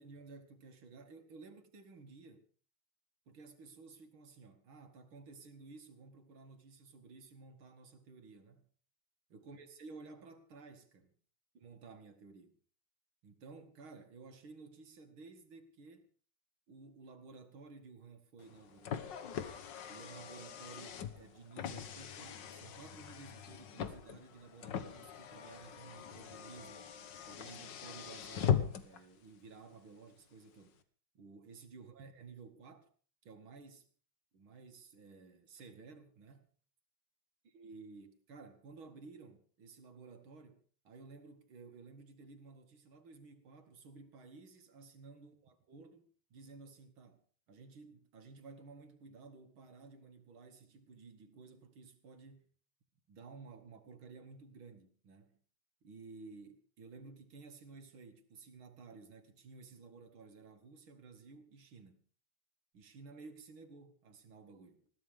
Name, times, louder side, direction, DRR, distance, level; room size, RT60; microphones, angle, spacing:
voice 1, 0.0-2.5 3.3-8.7 9.3-11.1 11.5-12.6 13.2-16.1 16.7-19.2 19.9-26.9 27.3-30.8 31.1-32.9 33.2-33.9 34.3-36.5 37.5-47.2 47.5-52.5 53.1-55.4 55.8-62.0 62.7-64.9, right 4 dB, 80° right, 2.9 m, -54 dB
Car, 18.4-29.0, left 8 dB, 65° left, 1.7 m, -40 dB
20.5 x 15.5 x 3.6 m
omnidirectional pair, 2.2 m